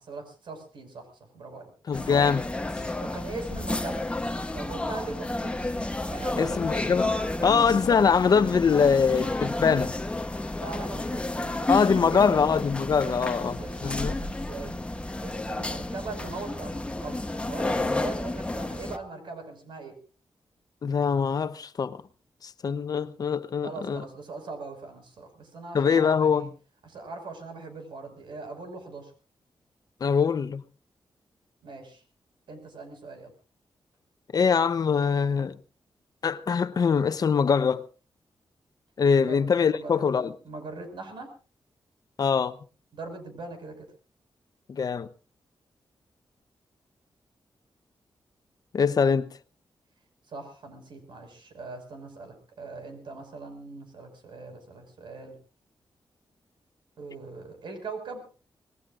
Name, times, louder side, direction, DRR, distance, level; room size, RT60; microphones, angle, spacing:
voice 1, 0.0-1.7 3.0-4.0 4.5-5.6 6.1-6.8 7.4-7.7 10.6-12.4 13.0-14.8 15.2-20.0 23.6-26.5 26.8-29.1 31.6-32.0 32.5-33.3 39.3-39.4 39.7-41.3 42.9-43.9 50.3-55.4 57.0-58.3, right 3 dB, 80° right, 5.7 m, -40 dB
voice 2, 1.9-2.4 6.4-7.1 7.4-9.9 11.7-13.6 13.8-14.1 20.8-22.0 22.4-24.0 25.7-26.5 30.0-30.6 34.3-35.6 36.2-37.8 39.0-40.3 42.2-42.6 44.7-45.1 48.7-49.3, left 6 dB, 50° left, 0.8 m, -23 dB
sound 1, 1.9-19.0, left 2 dB, 15° left, 1.1 m, -31 dB
26.0 x 20.0 x 2.6 m
wide cardioid pair, 130°, 8 cm